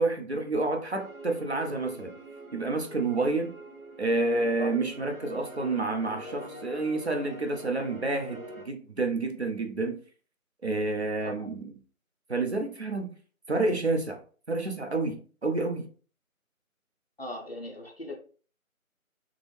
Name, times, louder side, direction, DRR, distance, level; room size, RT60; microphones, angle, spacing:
voice 1, 0.0-2.1 2.5-3.5 4.0-10.0 10.6-11.7 12.3-13.2 13.5-14.2 14.5-15.9, right 3 dB, 50° right, 0.6 m, -29 dB
sound 1, 1.0-8.6, right 1 dB, 75° right, 1.3 m, -44 dB
voice 2, 17.2-18.2, left 1 dB, 45° left, 0.6 m, -38 dB
3.6 x 2.0 x 3.1 m
figure-of-eight pair, 165°, 42 cm